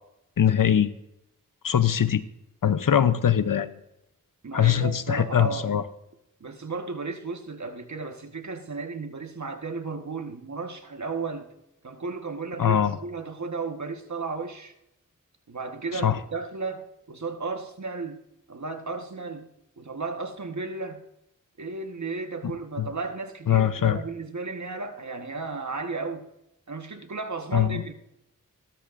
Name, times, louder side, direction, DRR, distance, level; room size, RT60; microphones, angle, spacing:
voice 1, 0.4-0.9 1.6-2.2 2.6-3.7 4.5-5.8 12.6-13.0 15.9-16.2 22.8-22.9 23.5-24.0 27.5-27.8, left 9 dB, 75° left, 0.8 m, -22 dB
voice 2, 4.4-5.7 6.4-11.5 11.8-14.7 15.5-18.2 18.5-19.5 19.8-21.0 21.6-26.3 26.7-27.9, right 4 dB, 55° right, 1.5 m, -34 dB
16.5 x 13.0 x 2.6 m
cardioid pair, 45°, 33 cm